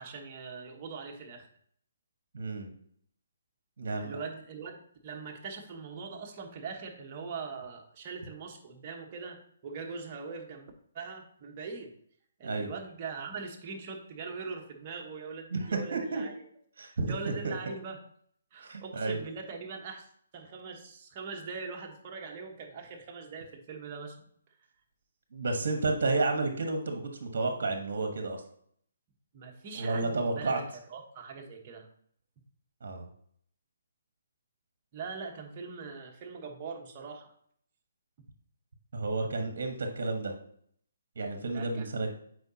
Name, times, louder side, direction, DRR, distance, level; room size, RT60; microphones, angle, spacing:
voice 1, 0.0-1.5 4.0-11.9 12.4-16.4 17.1-18.0 18.5-24.2 29.3-30.6 30.9-31.9 34.9-37.3 41.5-41.9, right 5 dB, 35° right, 1 dB, 1.2 m, -42 dB
voice 2, 2.3-2.7 3.8-4.2 12.4-12.7 15.5-16.3 16.8-17.5 18.6-19.2 25.3-28.4 29.7-30.6 32.8-33.1 38.9-40.3 41.1-42.1, right 3 dB, 60° right, 4 dB, 1.2 m, -31 dB
7.9 x 4.9 x 2.8 m, 0.65 s
hypercardioid pair, 150°, 0 cm